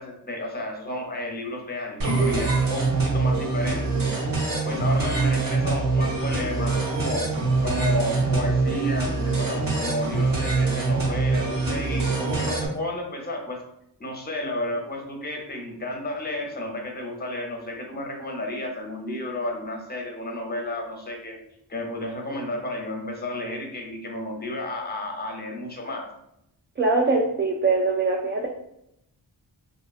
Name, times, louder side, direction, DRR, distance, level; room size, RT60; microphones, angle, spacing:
voice 1, 0.0-7.2 7.6-13.6 14.0-21.4 21.7-26.0, left 1 dB, 20° left, 1 dB, 0.7 m, -32 dB
sound 1, 2.0-12.7, right 3 dB, 50° right, 0.9 m, -24 dB
voice 2, 26.8-28.5, right 3 dB, 30° right, 0 dB, 0.3 m, -22 dB
2.6 x 2.3 x 2.4 m, 0.79 s
cardioid pair, 55°, 43 cm